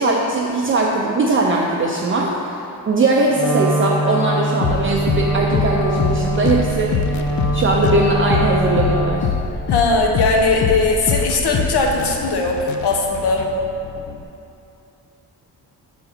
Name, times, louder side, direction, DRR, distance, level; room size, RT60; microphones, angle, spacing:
voice 1, 0.0-2.6 2.9-9.3, right 2 dB, 30° right, -2 dB, 0.5 m, -20 dB
Wind instrument woodwind instrument, 3.3-9.4, right 1 dB, 5° right, 0.8 m, -23 dB
sound 1, 4.6-14.2, left 6 dB, 45° left, 0.4 m, -24 dB
voice 2, 9.7-13.4, left 3 dB, 70° left, 0 dB, 0.9 m, -19 dB
6.6 x 4.1 x 4.0 m, 2.7 s
cardioid pair, 105°, 41 cm